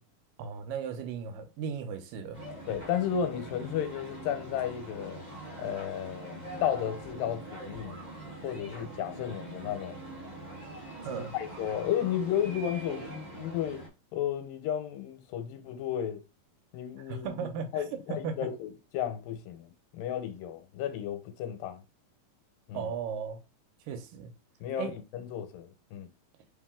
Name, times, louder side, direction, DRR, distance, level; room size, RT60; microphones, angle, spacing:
voice 1, 0.4-2.4 11.0-11.3 17.1-17.8 18.1-18.4 22.7-23.4 23.9-24.3 24.8-24.9, right 6 dB, 80° right, 2.4 m, -36 dB
sound 1, 2.3-13.9, right 1 dB, 30° right, 0.8 m, -43 dB
voice 2, 2.7-5.2 5.6-8.0 8.4-10.0 11.1-13.8 14.1-16.2 16.7-17.5 17.7-21.8 22.7-22.9 24.6-26.1, left 9 dB, 85° left, 2.4 m, -33 dB
5.1 x 2.9 x 3.6 m
omnidirectional pair, 4.0 m